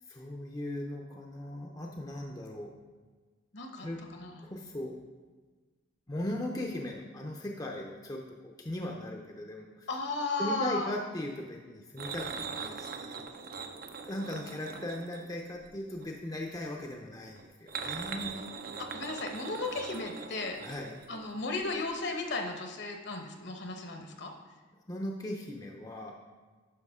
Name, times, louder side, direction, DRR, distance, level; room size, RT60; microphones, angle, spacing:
voice 1, 0.1-2.7 3.8-4.0 4.4-5.0 6.1-9.9 10.4-13.2 14.0-18.5 20.6-21.0 24.9-26.1, left 1 dB, 20° left, 1 dB, 0.6 m, -38 dB
voice 2, 3.5-4.5 9.9-10.9 18.8-20.6 21.1-24.3, left 3 dB, 60° left, 3 dB, 1.0 m, -35 dB
Afri cola turning wood floor, 12.0-16.2 17.4-21.6 21.9-22.0 22.4-22.5, right 5 dB, 45° right, 0.5 m, -41 dB
9.6 x 5.7 x 3.6 m, 1.4 s
head